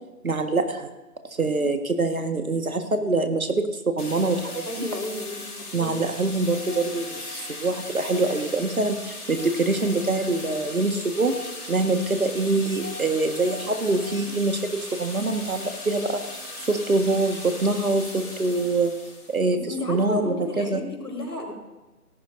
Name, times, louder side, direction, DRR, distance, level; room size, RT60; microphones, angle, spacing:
voice 1, 0.2-0.9 1.4-4.8 5.7-11.3 11.7-16.2 16.6-18.9 19.3-19.6 19.9-20.8, right 2 dB, 60° right, 6 dB, 1.7 m, -24 dB
sound 1, 4.0-19.5, left 2 dB, 70° left, 5.3 m, -38 dB
voice 2, 4.6-5.9 19.5-21.5, left 2 dB, 85° left, 0 dB, 4.8 m, -33 dB
18.0 x 14.0 x 2.7 m, 1.1 s
figure-of-eight pair, 170°, 47 cm